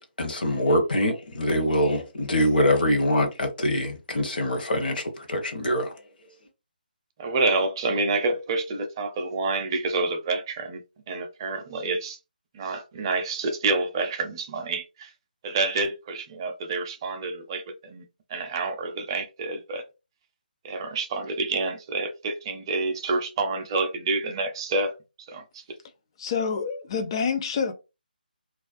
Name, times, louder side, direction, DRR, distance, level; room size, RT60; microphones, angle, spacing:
voice 1, 0.2-5.9, left 1 dB, 65° left, 0.8 m, -24 dB
voice 2, 7.2-10.8 11.1-12.2 12.5-15.1 15.4-18.0 18.3-19.8 20.6-24.9 25.3-25.6, right 3 dB, 25° right, 0.4 m, -28 dB
voice 3, 26.2-27.7, left 6 dB, 30° left, 0.4 m, -27 dB
2.3 x 2.2 x 2.4 m
figure-of-eight pair, 150°, 5 cm